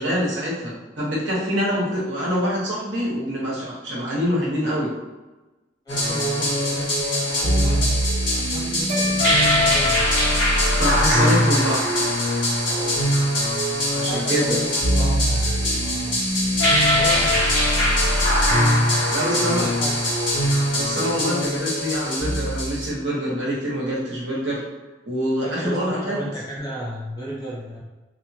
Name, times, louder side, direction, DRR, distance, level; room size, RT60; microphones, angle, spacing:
voice 1, 0.0-4.9 10.7-11.8 13.9-14.6 19.1-19.6 20.7-24.6 25.1-26.2, equal, 75° right, -6 dB, 1.1 m, -25 dB
sound 1, 5.9-22.9, equal, 70° left, 1.2 m, -21 dB
voice 2, 5.9-7.9 8.3-10.1 10.9-11.5 12.7-13.1 13.9-16.2 16.9-18.1 19.0-20.0 25.4-27.8, right 1 dB, 20° left, -6 dB, 0.7 m, -34 dB
sound 2, 8.9-11.2, left 1 dB, 35° right, 0.4 m, -35 dB
3.0 x 2.1 x 2.7 m, 1.1 s
head